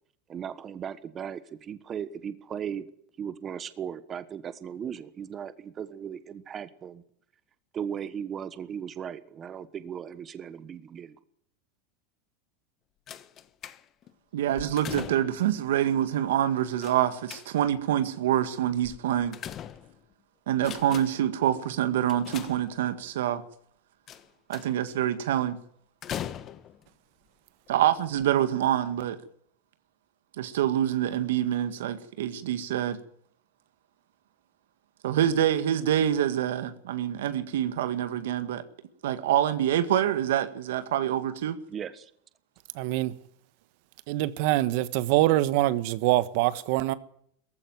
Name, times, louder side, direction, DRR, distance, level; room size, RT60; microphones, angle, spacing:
voice 1, 0.3-2.9 3.2-7.0 7.7-11.2 41.7-42.1, right 8 dB, 25° right, 1.3 m, -37 dB
sound 1, 13.1-14.1 14.5-15.5 16.8-17.8 18.8-20.1 20.5-21.3 22.1-23.1 24.1-24.9 26.0-26.9 27.7-27.8 28.1-28.2, left 10 dB, 30° left, 1.2 m, -40 dB
voice 2, 14.3-19.4 20.5-23.4 24.5-25.6 27.7-29.2 30.4-33.0 35.0-38.6 39.0-41.6, right 11 dB, 90° right, 1.9 m, -26 dB
voice 3, 42.7-43.1 44.1-46.9, right 16 dB, 60° right, 1.3 m, -24 dB
18.5 x 15.0 x 9.6 m
supercardioid pair, 150°, 0 cm